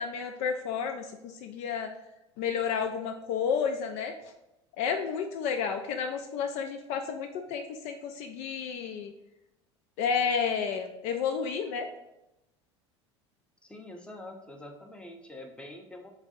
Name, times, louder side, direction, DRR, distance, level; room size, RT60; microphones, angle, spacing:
voice 1, 0.0-1.9 2.4-4.1 4.8-9.1 10.0-11.9, left 6 dB, 50° left, 5 dB, 0.4 m, -31 dB
voice 2, 13.6-16.1, left 1 dB, 5° left, 3 dB, 0.7 m, -45 dB
4.0 x 3.4 x 3.7 m, 0.91 s
figure-of-eight pair, 70°, 15 cm